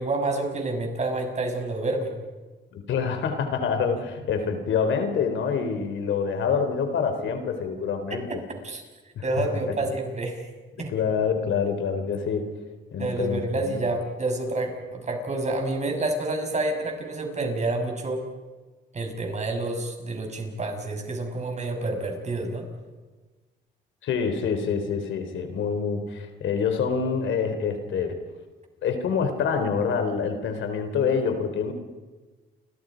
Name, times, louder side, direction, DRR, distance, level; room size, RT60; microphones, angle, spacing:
voice 1, 0.0-2.1 8.1-8.4 8.6-8.8 9.2-10.4 10.8-10.9 13.0-18.2 18.9-22.7, right 2 dB, 35° right, 3 dB, 6.4 m, -28 dB
voice 2, 2.7-8.4 9.2-9.8 10.9-12.5 12.9-13.8 24.0-28.2 28.8-31.7, left 6 dB, 75° left, 7 dB, 3.8 m, -26 dB
30.0 x 25.0 x 5.2 m, 1.3 s
cardioid pair, 90°, 20 cm